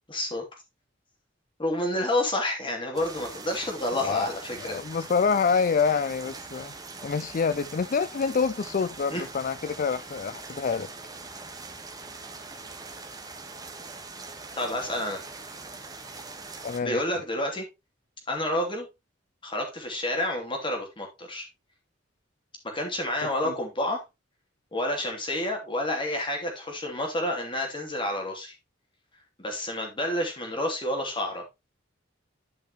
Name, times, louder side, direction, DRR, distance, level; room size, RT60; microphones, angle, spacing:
voice 1, 0.1-0.4 1.6-5.0 9.1-9.3 14.6-15.2 16.8-17.6 18.3-18.9 19.4-21.5 22.6-24.0 24.7-28.5 29.4-31.4, left 1 dB, 25° left, 2.9 m, -29 dB
sound 1, 2.9-16.8, right 3 dB, 20° right, 1.4 m, -42 dB
voice 2, 3.9-4.3 4.6-6.7 7.0-10.9 16.6-17.0 23.5-23.6, left 5 dB, 45° left, 0.4 m, -27 dB
11.5 x 5.6 x 3.0 m
head